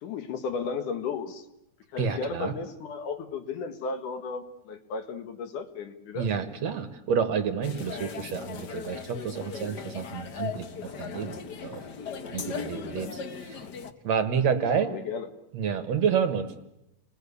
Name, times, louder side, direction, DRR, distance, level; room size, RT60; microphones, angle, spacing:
voice 1, 0.0-1.5 1.9-6.3 12.5-13.2 14.8-15.3, left 5 dB, 65° left, 9 dB, 3.0 m, -35 dB
voice 2, 2.0-2.5 6.2-10.7 11.0-11.4 11.6-11.8 12.3-13.7 14.0-14.9 15.5-16.5, right 7 dB, 60° right, 9 dB, 2.4 m, -29 dB
sound 1, 7.6-13.9, left 6 dB, 85° left, 0.9 m, -38 dB
30.0 x 21.0 x 8.4 m, 0.84 s
omnidirectional pair, 3.9 m